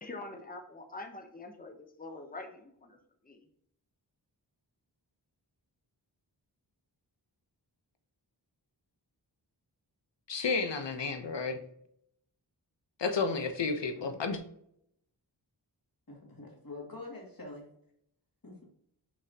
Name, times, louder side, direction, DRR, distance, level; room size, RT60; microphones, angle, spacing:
voice 1, 0.0-3.0 3.2-3.5, left 2 dB, 20° left, 4 dB, 1.0 m, -45 dB
voice 2, 10.3-11.6 13.0-14.4, left 4 dB, 75° left, 6 dB, 1.0 m, -31 dB
voice 3, 16.1-17.6 18.4-18.7, left 2 dB, 50° left, -2 dB, 2.6 m, -45 dB
6.5 x 5.8 x 2.9 m, 0.70 s
wide cardioid pair, 75°, 43 cm